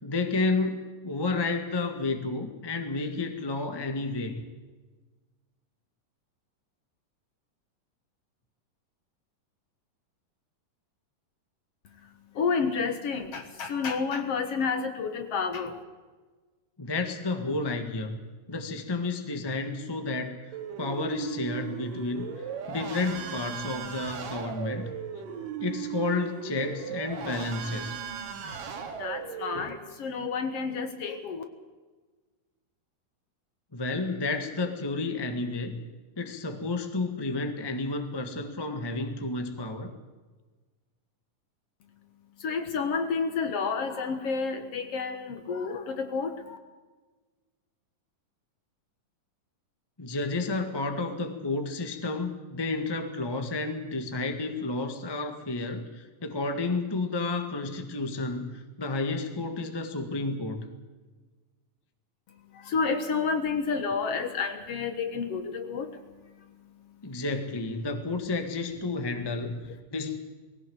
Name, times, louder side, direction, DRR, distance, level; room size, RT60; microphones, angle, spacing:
voice 1, 0.0-4.4 16.8-18.2 18.5-20.4 20.8-24.9 25.6-27.9 33.7-35.8 36.2-39.9 50.0-60.7 67.0-70.2, left 3 dB, 20° left, 6 dB, 0.6 m, -31 dB
voice 2, 12.3-15.8 29.0-31.4 42.4-46.6 62.5-66.0, left 5 dB, 55° left, 8 dB, 2.1 m, -30 dB
sound 1, 20.5-29.7, right 7 dB, 80° right, 3.5 m, -37 dB
20.0 x 17.0 x 7.9 m, 1.3 s
omnidirectional pair, 3.9 m